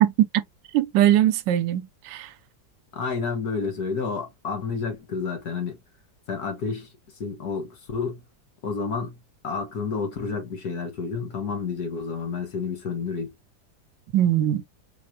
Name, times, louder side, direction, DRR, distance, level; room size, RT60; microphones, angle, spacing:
voice 1, 0.0-0.4 0.7-2.3 14.1-14.6, right 12 dB, 90° right, 1.3 m, -21 dB
voice 2, 2.9-5.8 6.3-6.9 7.2-8.2 8.6-9.2 9.4-13.3, left 5 dB, 60° left, 2.0 m, -30 dB
4.8 x 3.3 x 2.8 m
omnidirectional pair, 1.9 m